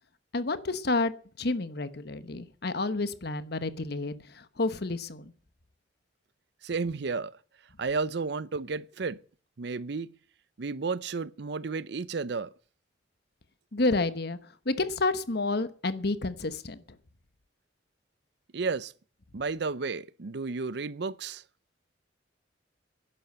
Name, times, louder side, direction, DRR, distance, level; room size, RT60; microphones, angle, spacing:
voice 1, 0.3-1.1 1.4-4.1 4.6-5.2 13.7-14.4 14.7-16.8, left 2 dB, 60° left, 1.2 m, -29 dB
voice 2, 6.6-7.3 7.8-9.2 9.6-10.1 10.6-12.5 18.5-18.9 19.3-21.4, right 4 dB, 65° right, 0.6 m, -32 dB
11.0 x 11.0 x 7.9 m
head